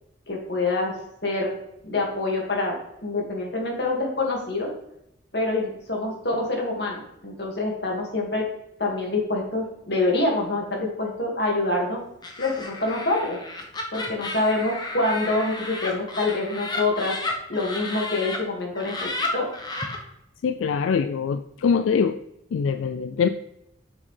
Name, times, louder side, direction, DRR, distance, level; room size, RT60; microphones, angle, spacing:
voice 1, 0.3-1.0 1.2-1.6 1.8-4.7 5.3-8.5 8.8-12.0 12.4-13.4 13.9-17.2 17.5-19.5, left 2 dB, 55° left, -1 dB, 2.0 m, -26 dB
Laughter, 12.2-18.4 18.7-20.0, left 2 dB, 20° left, 0.9 m, -33 dB
voice 2, 20.4-22.2 22.5-23.3, left 6 dB, 85° left, 10 dB, 0.3 m, -23 dB
7.3 x 6.4 x 3.3 m, 0.81 s
head